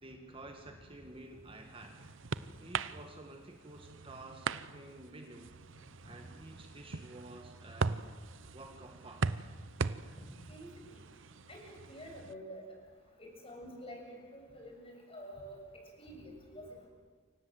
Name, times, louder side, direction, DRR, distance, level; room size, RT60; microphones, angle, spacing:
voice 1, 0.0-2.0 2.6-5.6 6.1-8.1 8.5-9.4 16.1-16.2, right 2 dB, 25° right, 4 dB, 1.8 m, -51 dB
sound 1, 1.2-12.3, right 4 dB, 65° right, 0.8 m, -40 dB
voice 2, 11.5-12.6 13.2-15.6 16.0-16.7, equal, 30° left, 1 dB, 7.3 m, -48 dB
28.5 x 25.0 x 8.0 m, 1.5 s
head